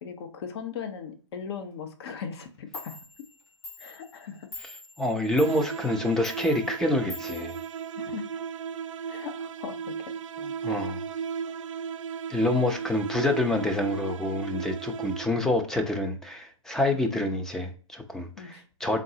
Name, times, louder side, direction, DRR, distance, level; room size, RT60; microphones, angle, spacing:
voice 1, 0.0-3.0 3.8-4.5 8.0-8.2 9.1-9.9 18.4-18.6, left 7 dB, 50° left, 7 dB, 1.0 m, -38 dB
Clock, 2.4-2.5 2.7-8.4, left 3 dB, 35° left, 1.9 m, -46 dB
voice 2, 5.0-7.6 10.4-11.0 12.3-19.0, left 1 dB, 5° left, 4 dB, 0.5 m, -27 dB
sound 1, 5.3-15.5, right 7 dB, 70° right, 0.4 m, -36 dB
3.8 x 3.7 x 2.7 m, 0.39 s
hypercardioid pair, 135°, 17 cm